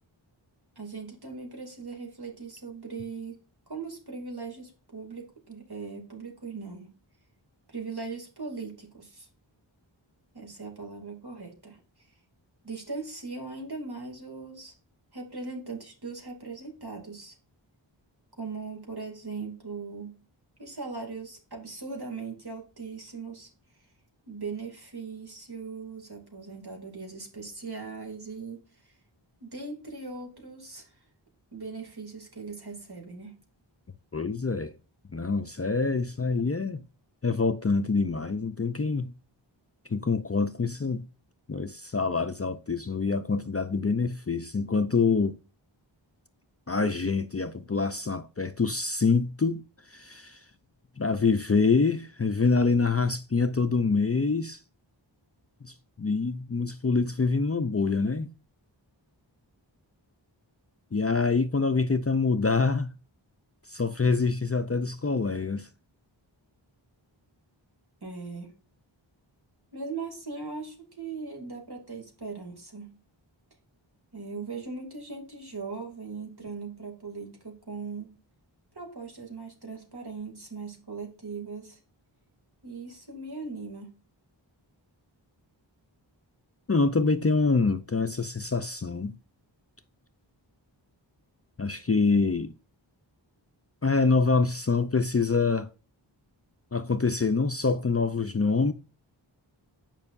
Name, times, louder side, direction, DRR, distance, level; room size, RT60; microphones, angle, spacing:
voice 1, 0.8-3.4 3.7-6.9 7.7-9.3 10.3-11.8 12.6-14.7 15.1-17.3 18.4-20.2 20.6-23.5 24.3-28.9 29.4-31.0 31.5-33.3 68.0-68.5 69.7-73.0 74.1-78.1 78.7-81.8 82.6-83.9, right 4 dB, 55° right, 2.6 m, -39 dB
voice 2, 34.1-34.7 35.1-36.8 37.2-39.1 39.9-41.0 41.5-45.3 46.7-49.6 49.9-50.4 51.0-54.6 55.6-58.3 60.9-62.9 63.7-65.7 86.7-89.1 91.6-92.5 93.8-95.7 96.7-98.7, left 4 dB, 30° left, 0.5 m, -26 dB
9.1 x 5.3 x 2.6 m
wide cardioid pair, 45°, 47 cm